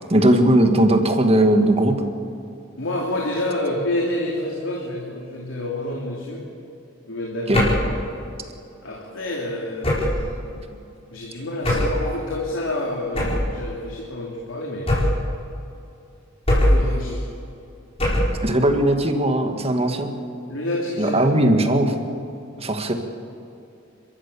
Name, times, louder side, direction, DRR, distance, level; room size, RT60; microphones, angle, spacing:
voice 1, 0.1-2.0 7.5-7.6 18.4-20.1 21.0-21.9 22.6-22.9, right 1 dB, 30° right, 5 dB, 1.9 m, -18 dB
voice 2, 2.8-6.4 7.1-7.9 8.8-10.2 11.1-14.9 16.6-17.2 20.5-21.2, left 1 dB, 85° left, -2 dB, 3.0 m, -28 dB
sound 1, 7.5-7.9 9.8-10.3 11.6-12.0 13.1-13.5 14.9-15.3 16.5-16.9 18.0-18.4, left 1 dB, 30° left, 5.7 m, -20 dB
30.0 x 14.0 x 7.1 m, 2.6 s
head